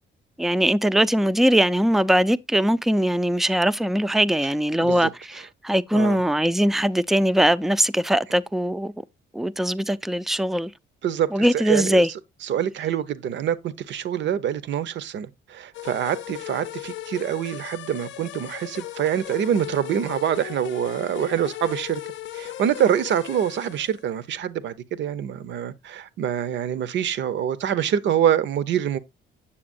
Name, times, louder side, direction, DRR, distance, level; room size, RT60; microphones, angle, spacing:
voice 1, 0.4-8.9 9.3-10.7 11.3-12.1, equal, ahead, 0.3 m, -21 dB
voice 2, 4.8-5.1 5.9-6.2 11.0-22.0 22.3-29.0, right 9 dB, 65° right, 0.7 m, -25 dB
sound 1, 15.7-24.0, left 13 dB, 70° left, 0.5 m, -37 dB
8.6 x 6.8 x 2.5 m
cardioid pair, 110°, 20 cm